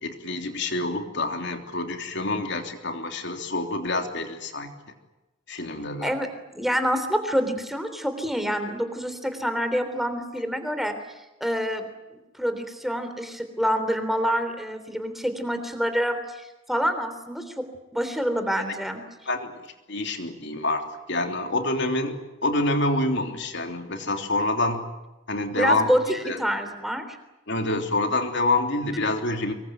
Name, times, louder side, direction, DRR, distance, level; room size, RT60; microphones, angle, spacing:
voice 1, 0.0-4.7 5.5-6.1 19.2-24.8 25.3-25.9 26.2-26.4 27.5-29.5, left 2 dB, 60° left, 5 dB, 3.4 m, -27 dB
voice 2, 6.5-10.9 11.4-11.9 12.4-17.7 17.9-19.0 25.5-27.2, equal, ahead, 7 dB, 3.5 m, -27 dB
25.5 x 22.5 x 9.3 m, 1.0 s
head